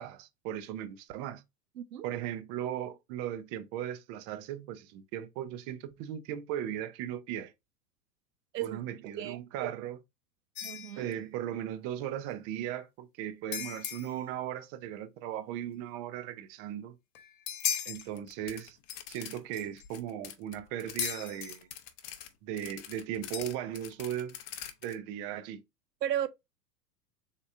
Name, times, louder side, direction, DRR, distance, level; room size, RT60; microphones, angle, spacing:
voice 1, 0.0-1.4 2.0-7.5 8.6-10.0 11.0-17.0 17.9-18.8 19.1-21.7 22.4-24.4 24.8-25.6, right 11 dB, 40° right, 0.6 m, -37 dB
voice 2, 8.5-9.7 10.6-11.1 26.0-26.3, right 11 dB, 85° right, 0.5 m, -35 dB
sound 1, 10.5-11.1 13.5-14.2 17.1-18.1 18.9-19.0 19.5-19.8 21.0-21.6 23.3-23.8, left 9 dB, 50° left, 1.0 m, -36 dB
sound 2, 17.9-19.4 19.6-21.1 21.4-24.9, left 11 dB, 35° left, 0.6 m, -45 dB
3.8 x 3.6 x 2.4 m
hypercardioid pair, 100°, 48 cm